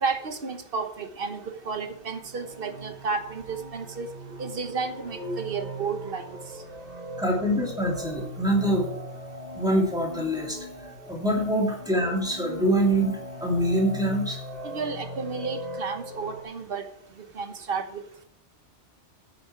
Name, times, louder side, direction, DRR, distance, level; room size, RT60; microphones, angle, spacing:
voice 1, 0.0-4.1 4.4-6.4 14.6-16.9 17.3-18.0, right 4 dB, 55° right, 8 dB, 1.2 m, -32 dB
sound 1, 1.7-16.4, equal, 35° right, 1.6 m, -39 dB
voice 2, 7.2-8.9 9.5-14.4, right 1 dB, 5° right, -3 dB, 2.8 m, -25 dB
9.2 x 7.0 x 4.7 m, 0.73 s
omnidirectional pair, 1.2 m